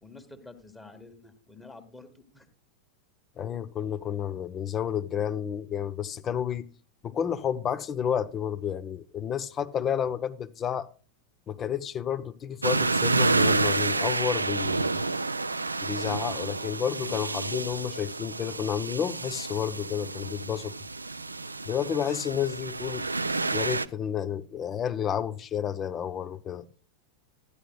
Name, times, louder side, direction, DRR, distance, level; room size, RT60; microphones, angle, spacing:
voice 1, 0.0-2.5 4.1-4.2, left 3 dB, 10° left, 1.5 m, -49 dB
voice 2, 3.4-6.7 7.0-10.9 11.5-15.0 15.8-20.7 21.7-23.0 23.5-26.7, left 8 dB, 25° left, 0.7 m, -31 dB
sound 1, 12.6-23.8, right 3 dB, 80° right, 0.4 m, -29 dB
14.0 x 10.0 x 2.3 m
figure-of-eight pair, 90°, 0 cm